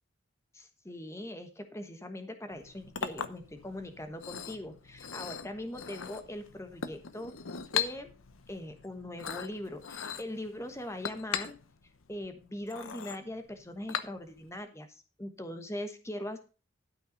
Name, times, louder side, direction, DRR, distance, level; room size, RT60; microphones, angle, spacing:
voice 1, 0.5-8.1 8.5-11.6 12.1-16.4, left 1 dB, 15° left, 7 dB, 1.2 m, -41 dB
Chink clink, 2.5-14.5, left 7 dB, 80° left, 0.8 m, -40 dB
12.5 x 5.6 x 5.2 m, 0.34 s
head